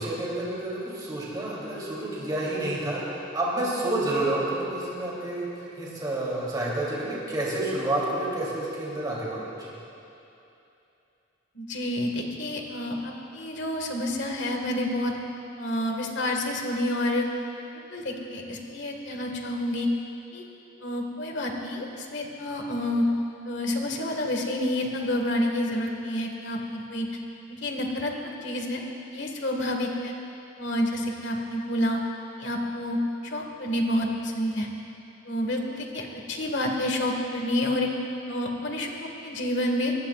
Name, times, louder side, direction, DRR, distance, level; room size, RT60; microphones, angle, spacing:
voice 1, 0.0-9.7, right 1 dB, 20° right, -7 dB, 3.3 m, -29 dB
voice 2, 11.6-15.1 15.6-17.3 17.9-19.9 20.3-20.4 20.8-23.0 23.5-27.1 27.5-28.8 29.1-30.1 30.6-32.0 32.4-33.0 33.2-34.7 35.3-37.9 38.3-39.9, left 1 dB, 65° left, 1 dB, 1.9 m, -29 dB
24.0 x 19.0 x 2.5 m, 2.8 s
head